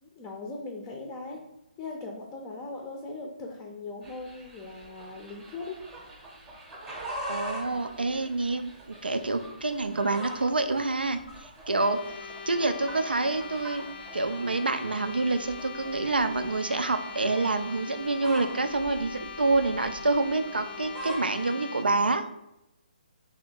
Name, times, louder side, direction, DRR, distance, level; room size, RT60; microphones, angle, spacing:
voice 1, 0.0-1.4 1.8-5.8, left 3 dB, 15° left, 1 dB, 0.5 m, -39 dB
sound 1, 4.0-21.5, right 1 dB, 15° right, 0.8 m, -43 dB
voice 2, 7.3-11.2 11.7-13.9 14.1-22.2, right 3 dB, 85° right, 8 dB, 0.4 m, -27 dB
sound 2, 11.7-21.8, left 5 dB, 75° left, 0.7 m, -41 dB
3.3 x 2.7 x 4.4 m, 0.89 s
figure-of-eight pair, 140°, 5 cm